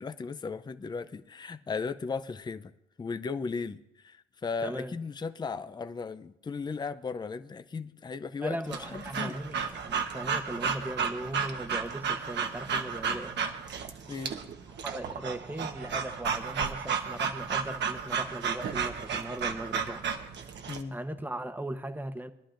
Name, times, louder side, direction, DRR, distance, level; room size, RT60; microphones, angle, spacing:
voice 1, 0.0-2.7 3.0-9.4 14.1-14.4 20.7-21.0, left 4 dB, 20° left, 0.5 m, -36 dB
voice 2, 4.6-5.0 8.4-13.4 14.8-20.1 20.6-22.3, right 1 dB, 10° right, 1.0 m, -38 dB
Breathing / Dog, 8.7-20.8, right 6 dB, 65° right, 1.1 m, -33 dB
21.0 x 11.0 x 2.6 m
cardioid pair, 90°, 20 cm